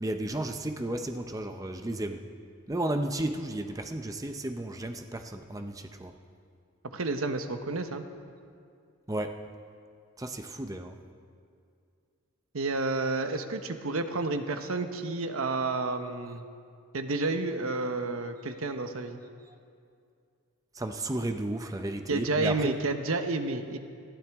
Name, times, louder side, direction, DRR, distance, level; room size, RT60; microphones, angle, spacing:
voice 1, 0.0-2.2 2.7-6.1 9.1-9.4 10.2-11.0 20.8-22.7, right 1 dB, 15° right, 6 dB, 0.6 m, -33 dB
voice 2, 6.9-8.0 12.5-16.4 16.9-19.2 22.1-23.8, right 3 dB, 85° right, 7 dB, 0.9 m, -30 dB
20.0 x 15.0 x 3.5 m, 2.4 s
head